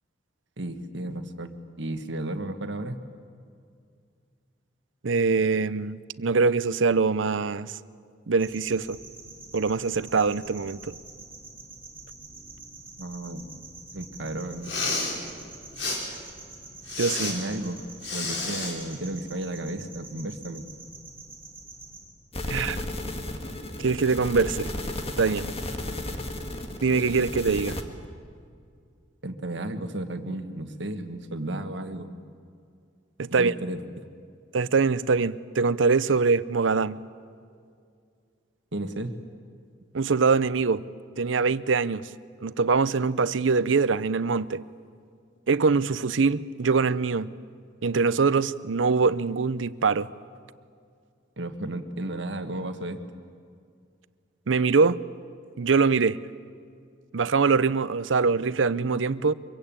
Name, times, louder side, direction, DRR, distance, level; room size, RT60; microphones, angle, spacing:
voice 1, 0.6-1.5 1.8-3.0 13.0-13.5 13.9-14.7 17.3-17.9 18.1-20.7 29.2-32.1 33.3-34.0 38.7-39.1 51.4-53.0, right 1 dB, 70° right, 1.6 m, -33 dB
voice 2, 5.0-7.7 8.3-9.0 9.5-11.0 17.0-17.3 22.5-22.8 23.8-24.7 25.2-25.5 26.8-27.8 33.2-33.5 34.5-37.0 39.9-40.8 41.2-42.1 42.4-44.6 45.5-47.3 47.8-50.1 54.5-55.0 55.6-56.2 57.1-59.3, right 4 dB, 90° right, 0.6 m, -23 dB
sound 1, 8.4-22.1, right 3 dB, 10° right, 6.3 m, -46 dB
Respiratory sounds, 14.5-15.1 15.8-16.0 16.9-17.3 18.0-18.7, left 3 dB, 80° left, 5.5 m, -30 dB
sound 2, 22.3-27.8, left 1 dB, 30° left, 1.9 m, -33 dB
24.5 x 23.0 x 8.9 m
head